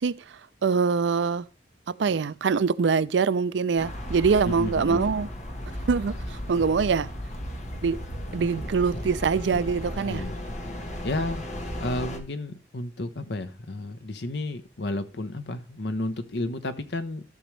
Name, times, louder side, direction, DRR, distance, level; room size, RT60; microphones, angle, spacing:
voice 1, 0.0-1.4 1.9-5.3 5.9-7.1 7.8-8.0 8.3-10.2, right 5 dB, 90° right, 0.4 m, -24 dB
sound 1, 3.8-12.2, equal, 40° left, 1.2 m, -35 dB
voice 2, 4.4-5.1 10.1-10.4 11.0-11.4 11.8-17.2, left 2 dB, 75° left, 0.9 m, -32 dB
14.0 x 6.2 x 3.2 m
head